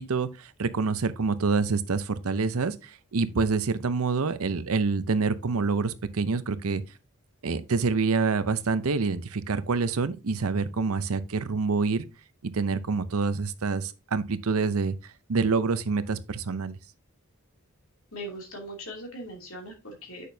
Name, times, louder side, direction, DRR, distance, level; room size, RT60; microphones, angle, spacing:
voice 1, 0.0-6.8 7.4-12.1 12.4-14.9 15.3-16.8, right 4 dB, 80° right, 0.6 m, -27 dB
voice 2, 18.1-20.3, equal, 70° left, 2.7 m, -40 dB
8.3 x 6.4 x 2.7 m
head